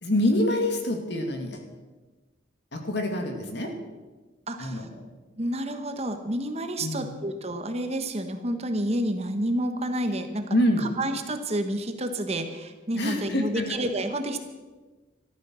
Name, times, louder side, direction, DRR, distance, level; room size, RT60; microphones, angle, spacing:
voice 1, 0.0-1.6 2.7-3.7 4.6-4.8 6.8-7.1 10.5-10.9 13.0-13.8, left 1 dB, 60° left, 4 dB, 2.4 m, -26 dB
voice 2, 4.5-4.9 5.4-14.4, right 1 dB, 35° right, 7 dB, 1.3 m, -29 dB
13.5 x 13.5 x 6.4 m, 1.3 s
head